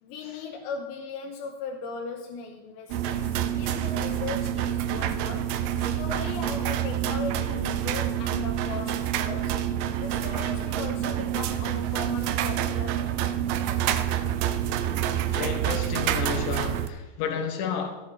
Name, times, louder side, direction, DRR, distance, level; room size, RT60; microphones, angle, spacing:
voice 1, 0.0-13.0 13.6-13.8, left 4 dB, 85° left, 2 dB, 3.0 m, -38 dB
sound 1, 2.9-16.9, right 10 dB, 85° right, 3.0 m, -27 dB
voice 2, 15.3-18.0, left 6 dB, 60° left, 4 dB, 2.4 m, -31 dB
15.0 x 8.4 x 4.2 m, 1.1 s
omnidirectional pair, 5.1 m